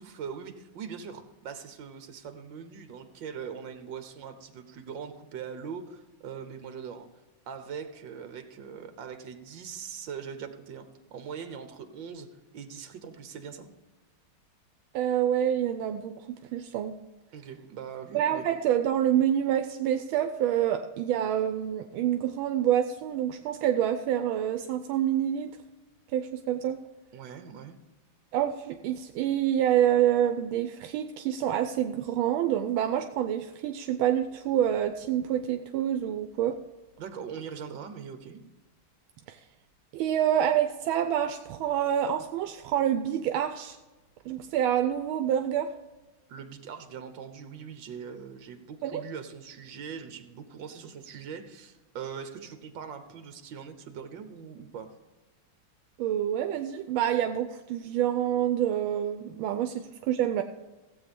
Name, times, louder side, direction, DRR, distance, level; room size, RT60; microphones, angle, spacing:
voice 1, 0.0-7.1 7.5-12.3 12.5-13.7 17.3-18.5 27.1-27.8 37.0-38.4 46.3-54.9, right 7 dB, 65° right, 9 dB, 1.8 m, -41 dB
voice 2, 14.9-16.3 16.5-17.0 18.1-25.6 26.1-26.8 28.3-36.6 39.3-39.4 39.9-43.8 44.3-45.7 48.8-49.0 56.0-60.4, right 10 dB, 80° right, 8 dB, 1.4 m, -27 dB
16.0 x 8.1 x 5.2 m, 1.2 s
omnidirectional pair, 2.3 m